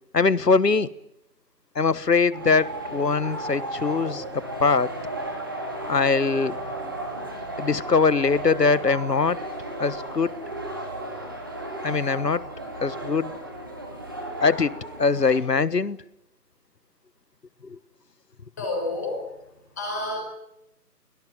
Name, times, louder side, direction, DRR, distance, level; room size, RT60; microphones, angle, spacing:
voice 1, 0.1-0.9 1.7-4.9 5.9-6.9 7.6-9.4 9.8-10.3 11.8-12.4 12.8-13.3 14.4-14.7 15.0-16.0 17.6-17.8, left 4 dB, 75° left, 18 dB, 1.5 m, -22 dB
sound 1, 2.3-15.4, right 1 dB, 15° right, 2.3 m, -34 dB
voice 2, 18.6-19.3 19.8-20.2, left 2 dB, 10° left, 0 dB, 5.0 m, -29 dB
29.5 x 18.0 x 9.2 m, 0.82 s
figure-of-eight pair, 175°, 49 cm